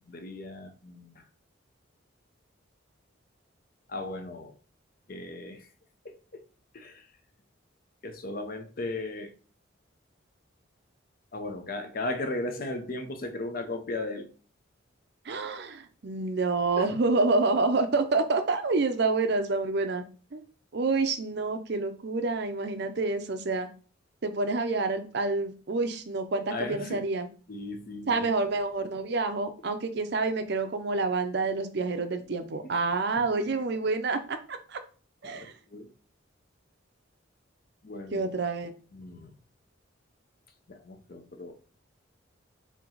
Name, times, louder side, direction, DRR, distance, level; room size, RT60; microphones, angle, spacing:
voice 1, 0.1-1.3 3.9-4.5 5.1-5.7 6.0-6.4 6.7-7.1 8.0-9.3 11.3-14.3 16.8-16.9 26.5-27.1 27.5-28.4 33.2-33.3 35.2-35.9 37.8-38.3 38.9-39.3 40.7-41.5, left 2 dB, 45° left, 0.7 m, -36 dB
voice 2, 15.2-20.0 20.3-20.4 20.7-23.7 24.2-27.3 28.1-34.8 35.2-35.5 38.1-38.7, right 3 dB, 55° right, 0.5 m, -28 dB
4.5 x 2.9 x 3.8 m
head